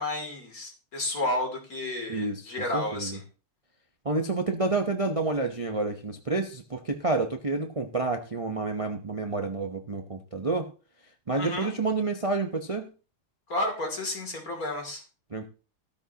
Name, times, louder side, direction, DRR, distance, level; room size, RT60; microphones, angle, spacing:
voice 1, 0.0-3.2 11.3-11.7 13.5-15.0, left 1 dB, 40° left, 2 dB, 3.2 m, -31 dB
voice 2, 2.1-3.2 4.0-10.7 11.3-12.9 15.3-15.5, right 3 dB, 65° right, 5 dB, 0.3 m, -29 dB
13.5 x 13.0 x 2.9 m, 0.35 s
omnidirectional pair, 2.3 m